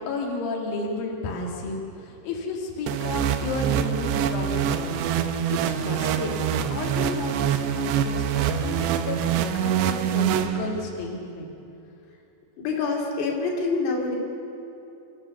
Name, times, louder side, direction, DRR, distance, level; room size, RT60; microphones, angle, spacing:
voice 1, 0.1-5.0 5.2-11.5, left 3 dB, 65° left, -1 dB, 3.7 m, -32 dB
sound 1, 2.9-11.0, right 9 dB, 90° right, 3.0 m, -25 dB
voice 2, 12.6-14.2, left 4 dB, 80° left, 0 dB, 4.7 m, -26 dB
27.5 x 14.5 x 7.0 m, 2.9 s
omnidirectional pair, 4.8 m